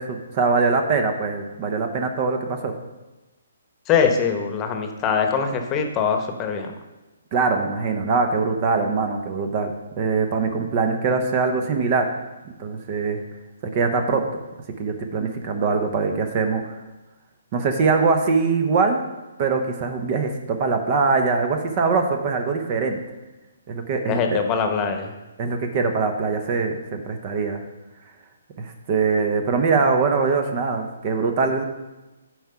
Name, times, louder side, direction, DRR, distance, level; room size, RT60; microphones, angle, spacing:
voice 1, 0.0-2.7 7.3-12.1 12.6-13.2 13.7-14.3 14.8-16.8 17.5-19.0 19.4-23.0 23.7-24.4 25.4-27.6 28.6-31.6, right 4 dB, 35° right, 6 dB, 0.8 m, -22 dB
voice 2, 3.9-6.7 24.1-25.1, left 6 dB, 25° left, 5 dB, 1.0 m, -22 dB
9.1 x 4.8 x 5.6 m, 1.1 s
hypercardioid pair, 140°, 0 cm